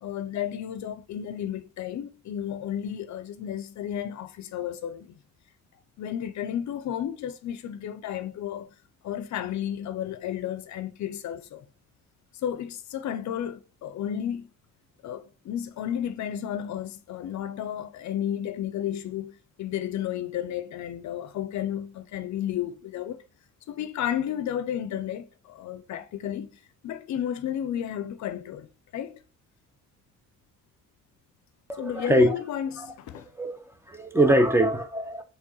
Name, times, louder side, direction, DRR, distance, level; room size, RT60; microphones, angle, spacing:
voice 1, 0.0-5.2 6.0-8.7 9.0-11.6 12.4-14.5 15.0-23.2 23.7-28.7 28.9-29.2 31.8-33.3, left 10 dB, 65° left, 0.6 m, -32 dB
voice 2, 31.7-32.3 32.8-32.9 33.4-35.2, equal, 10° right, 0.8 m, -23 dB
4.4 x 3.4 x 2.9 m
cardioid pair, 90°, 30 cm